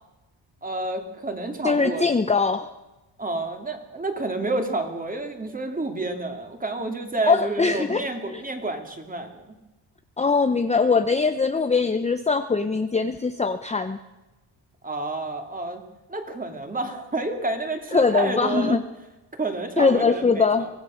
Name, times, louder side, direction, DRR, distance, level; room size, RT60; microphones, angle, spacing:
voice 1, 0.6-2.1 3.2-9.6 14.8-15.8 16.1-18.8 19.3-20.7, right 2 dB, 20° right, 5 dB, 2.7 m, -29 dB
voice 2, 1.6-2.7 7.2-8.4 10.2-14.0 17.9-18.8 19.8-20.7, left 4 dB, 15° left, 8 dB, 0.8 m, -22 dB
24.0 x 17.5 x 6.4 m, 1.0 s
cardioid pair, 135°, 42 cm